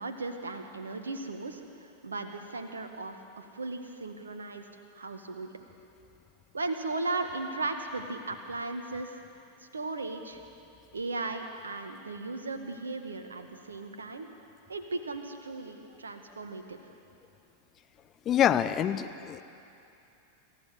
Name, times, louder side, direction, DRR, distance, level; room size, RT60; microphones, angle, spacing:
voice 1, 0.0-1.6 2.0-5.5 6.5-9.1 9.7-10.4 10.9-14.3 14.7-16.8, right 3 dB, 75° right, 6 dB, 1.7 m, -36 dB
voice 2, 18.2-19.4, left 10 dB, 30° left, 12 dB, 0.9 m, -26 dB
26.0 x 15.0 x 8.1 m, 2.8 s
figure-of-eight pair, 90°, 0 cm